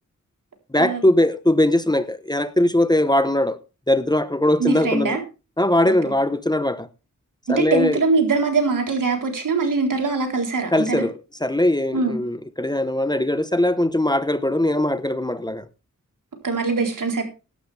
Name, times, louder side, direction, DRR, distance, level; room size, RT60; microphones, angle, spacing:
voice 1, 0.7-3.6 3.9-5.2 5.6-6.9 7.5-8.0 10.7-15.6, left 1 dB, 15° left, 1.0 m, -20 dB
voice 2, 4.6-5.2 5.8-5.9 7.5-11.1 11.9-12.2 16.4-17.2, right 4 dB, 80° right, 4.0 m, -22 dB
15.5 x 11.5 x 3.4 m
wide cardioid pair, 70°, 31 cm